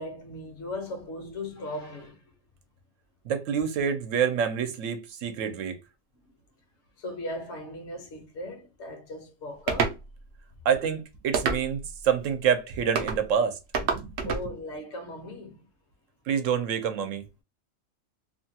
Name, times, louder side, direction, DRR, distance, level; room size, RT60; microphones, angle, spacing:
voice 1, 0.0-2.3 6.2-6.3 7.0-10.0 14.2-15.7, left 1 dB, 60° left, 1.1 m, -38 dB
voice 2, 3.2-5.8 10.6-14.1 16.3-17.2, right 7 dB, 75° right, 1.0 m, -27 dB
sound 1, 9.7-10.0 11.3-11.9 13.0-13.2 13.7-14.5, right 5 dB, 60° right, 0.6 m, -27 dB
2.9 x 2.2 x 2.7 m
omnidirectional pair, 1.3 m